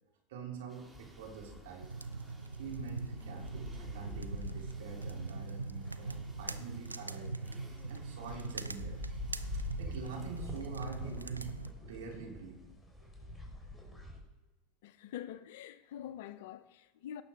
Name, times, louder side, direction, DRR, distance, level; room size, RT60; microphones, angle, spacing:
voice 1, 0.3-1.9 2.6-7.4 7.9-9.0 9.5-11.5 11.8-12.6 13.2-13.3 13.9-14.0, right 5 dB, 65° right, 2.9 m, -46 dB
sound 1, 0.7-11.2, right 2 dB, 10° right, 2.1 m, -61 dB
sound 2, 0.9-14.2, left 2 dB, 10° left, 3.3 m, -47 dB
sound 3, 1.8-11.7, right 3 dB, 85° right, 0.4 m, -42 dB
voice 2, 14.8-17.2, left 10 dB, 60° left, 0.5 m, -45 dB
17.5 x 6.6 x 3.5 m
figure-of-eight pair, 80°, 0 cm